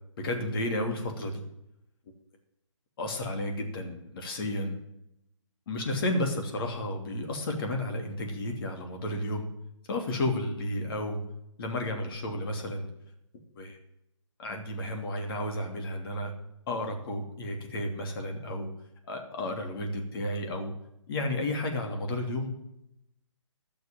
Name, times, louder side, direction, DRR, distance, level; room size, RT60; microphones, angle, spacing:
voice 1, 0.2-1.4 3.0-4.8 5.7-9.5 9.9-11.2 11.6-12.9 13.6-13.8 14.4-16.3 16.7-18.7 19.1-20.7 21.1-22.5, left 1 dB, 45° left, 3 dB, 2.9 m, -32 dB
12.0 x 6.7 x 8.9 m, 0.81 s
figure-of-eight pair, 145°, 16 cm